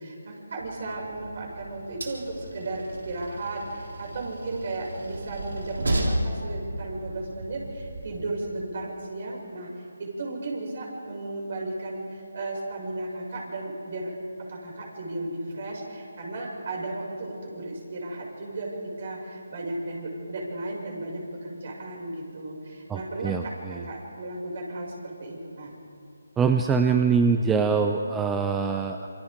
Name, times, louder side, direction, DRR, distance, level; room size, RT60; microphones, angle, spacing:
voice 1, 0.0-14.1 14.4-25.7, right 2 dB, 50° right, -2 dB, 6.5 m, -35 dB
Train, 0.6-8.3, right 1 dB, 70° right, 3.5 m, -34 dB
voice 2, 22.9-23.9 26.4-29.1, right 5 dB, 10° right, 5 dB, 0.6 m, -24 dB
27.0 x 25.5 x 3.8 m, 2.5 s
figure-of-eight pair, 155°, 0 cm